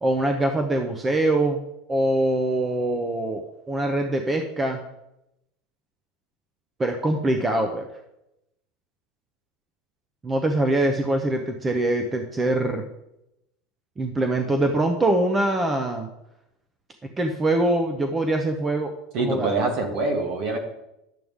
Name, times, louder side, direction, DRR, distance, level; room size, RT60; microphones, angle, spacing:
voice 1, 0.0-1.6 1.9-4.8 6.8-7.8 10.2-12.9 14.0-16.1 17.2-18.9 19.2-19.5, right 1 dB, 15° right, 5 dB, 0.7 m, -23 dB
voice 2, 19.1-20.6, right 3 dB, 50° right, 3 dB, 2.0 m, -24 dB
11.0 x 7.6 x 3.6 m, 0.86 s
supercardioid pair, 150°, 0 cm